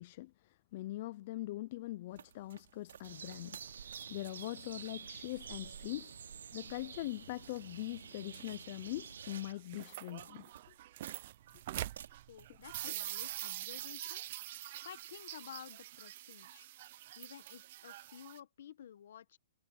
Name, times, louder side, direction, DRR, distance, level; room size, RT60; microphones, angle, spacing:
voice 1, 0.0-3.7 4.1-6.2 6.5-10.4 12.8-12.9, left 17 dB, 35° left, 0.3 m, -42 dB
sound 1, 2.1-13.9, right 9 dB, 70° right, 3.1 m, -57 dB
sound 2, 3.0-9.5, right 7 dB, 85° right, 0.7 m, -49 dB
sound 3, 9.5-18.4, right 14 dB, 35° right, 0.5 m, -45 dB
voice 2, 12.3-14.2 14.8-16.7 17.2-19.4, left 9 dB, 55° left, 1.0 m, -52 dB
hypercardioid pair, 175°, 0 cm